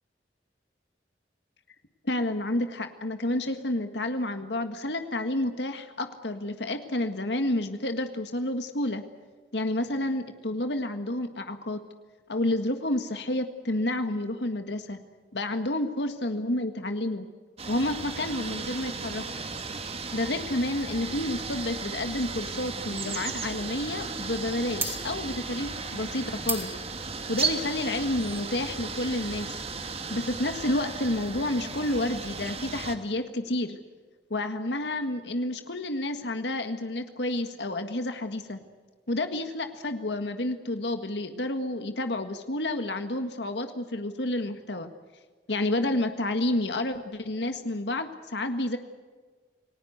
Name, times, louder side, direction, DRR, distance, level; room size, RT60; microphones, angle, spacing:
voice 1, 2.0-9.0 9.5-11.8 12.3-15.0 15.3-17.3 17.7-19.2 20.1-26.7 27.3-29.6 30.1-33.8 34.3-38.6 39.1-44.9 45.5-48.8, left 1 dB, 75° left, 7 dB, 1.7 m, -30 dB
sound 1, 17.6-33.0, right 4 dB, 35° right, 2.1 m, -35 dB
sound 2, 24.8-29.9, right 3 dB, 15° right, 4.5 m, -38 dB
29.0 x 19.0 x 8.0 m, 1.5 s
head